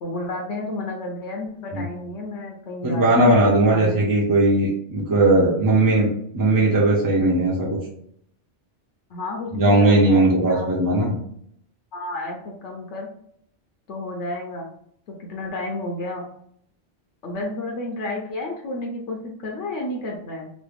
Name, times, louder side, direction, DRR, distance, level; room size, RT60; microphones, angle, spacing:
voice 1, 0.0-3.4 3.7-4.1 9.1-10.7 11.9-13.1 13.9-14.7 15.1-16.3 17.2-19.2 19.4-20.5, left 2 dB, 75° left, 0 dB, 0.9 m, -31 dB
voice 2, 2.8-7.7 9.6-11.2, right 2 dB, 30° right, -4 dB, 0.4 m, -18 dB
3.0 x 2.5 x 3.3 m, 0.68 s
omnidirectional pair, 1.2 m